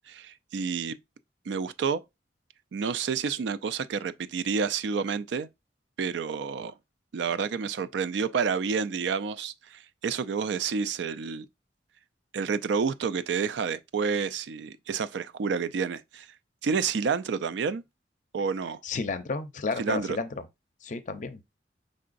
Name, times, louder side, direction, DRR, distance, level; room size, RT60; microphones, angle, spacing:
voice 1, 0.1-1.0 1.5-2.0 2.7-5.5 6.0-6.7 7.1-11.5 12.3-16.3 16.6-17.8 18.3-18.8 19.8-20.2, right 5 dB, 75° right, 0.4 m, -29 dB
voice 2, 18.8-20.5 20.8-21.4, left 4 dB, 45° left, 0.5 m, -32 dB
5.3 x 3.8 x 2.5 m
head